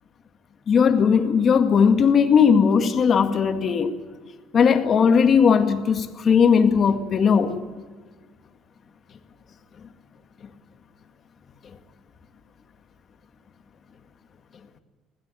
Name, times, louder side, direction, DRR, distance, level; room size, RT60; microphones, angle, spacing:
voice 1, 0.7-3.9 4.5-7.6, left 6 dB, 45° left, 2.1 m, -18 dB
21.0 x 16.5 x 9.3 m
cardioid pair, 105°, 0 cm